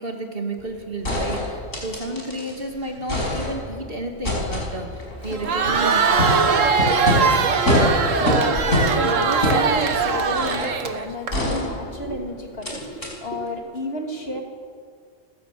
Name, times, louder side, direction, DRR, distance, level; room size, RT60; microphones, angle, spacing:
voice 1, 0.0-6.5, right 2 dB, 45° right, 2 dB, 2.8 m, -31 dB
sound 1, 0.6-0.7 1.0-2.6 2.9-3.8 4.2-10.8 11.3-12.2 12.6-12.7 13.0-13.1, left 1 dB, 90° left, 5.9 m, -25 dB
Crowd, 5.3-11.3, right 5 dB, 85° right, 1.6 m, -21 dB
voice 2, 7.4-14.4, left 1 dB, 50° left, 2 dB, 2.7 m, -31 dB
29.5 x 15.5 x 7.8 m, 2.2 s
omnidirectional pair, 1.3 m